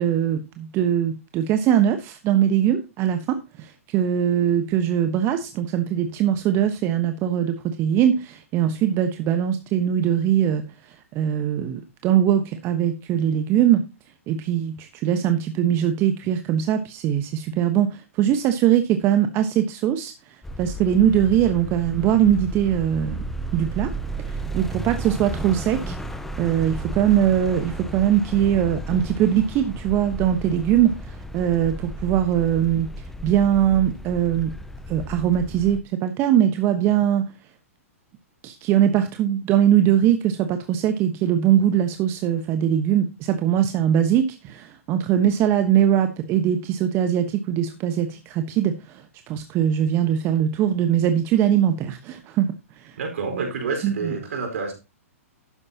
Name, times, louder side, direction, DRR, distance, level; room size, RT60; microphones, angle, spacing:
voice 1, 0.0-13.8 14.3-20.1 20.6-23.2 23.5-23.9 24.3-25.9 26.4-32.9 33.2-34.5 34.9-37.3 38.4-52.5 52.8-52.9 53.8-54.1, right 10 dB, 30° right, 8 dB, 1.1 m, -21 dB
sound 1, 20.4-35.8, right 1 dB, 5° left, 1.0 m, -33 dB
voice 2, 53.0-54.7, right 4 dB, 65° right, 4 dB, 4.6 m, -28 dB
12.0 x 9.7 x 2.9 m, 0.27 s
hypercardioid pair, 120°, 8 cm